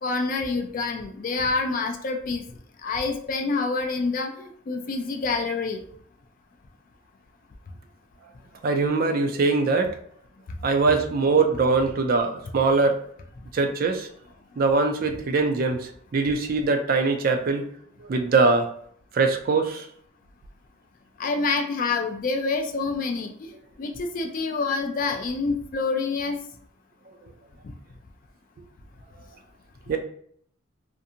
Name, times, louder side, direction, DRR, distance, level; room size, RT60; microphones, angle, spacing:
voice 1, 0.0-2.4 2.8-5.8 21.2-23.5 23.8-26.4 27.6-27.7, left 4 dB, 40° left, 4 dB, 0.3 m, -27 dB
voice 2, 8.6-9.9 10.6-13.0 13.5-14.1 14.6-15.8 16.1-17.6 18.1-18.7 19.1-19.8 29.9-30.0, right 4 dB, 45° right, 6 dB, 0.3 m, -22 dB
2.5 x 2.5 x 2.7 m, 0.63 s
head